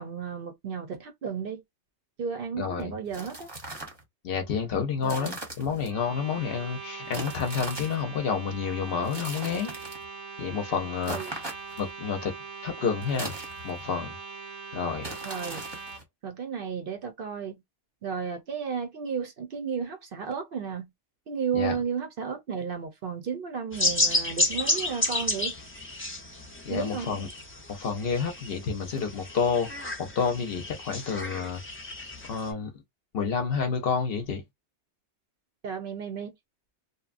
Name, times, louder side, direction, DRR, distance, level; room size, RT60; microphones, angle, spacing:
voice 1, 0.0-1.6 2.2-3.5 5.0-5.4 11.1-11.3 15.2-15.6 16.2-17.6 18.0-20.9 21.3-25.5 26.7-27.1 35.6-36.3, right 6 dB, 60° right, 0.7 m, -33 dB
voice 2, 2.6-3.0 4.2-9.8 10.4-11.4 11.8-12.3 12.6-13.3 13.6-14.2 14.7-15.1 21.5-21.8 26.6-27.3 27.7-31.6 32.2-32.8 33.1-34.4, left 6 dB, 60° left, 0.8 m, -29 dB
sound 1, 3.0-4.0 5.0-5.9 7.1-8.0 9.0-10.1 11.0-11.9 13.0-13.9 15.0-16.0, right 2 dB, 25° right, 0.8 m, -39 dB
sound 2, 5.9-16.0, right 4 dB, 85° right, 1.1 m, -41 dB
sound 3, 23.7-32.5, left 1 dB, 15° left, 0.5 m, -31 dB
2.8 x 2.2 x 2.4 m
omnidirectional pair, 1.2 m